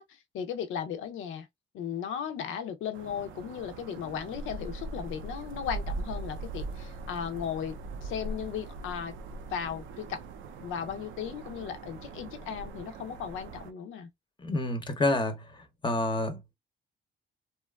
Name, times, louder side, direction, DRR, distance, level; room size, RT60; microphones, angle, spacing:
voice 1, 0.0-1.5 1.7-7.8 8.0-9.1 9.5-10.2 10.6-14.1, left 8 dB, 85° left, 0.6 m, -36 dB
sound 1, 2.9-13.7, right 3 dB, 75° right, 0.5 m, -41 dB
voice 2, 14.4-15.4 15.8-16.6, left 2 dB, 25° left, 0.7 m, -28 dB
2.8 x 2.3 x 2.2 m
cardioid pair, 90°, 20 cm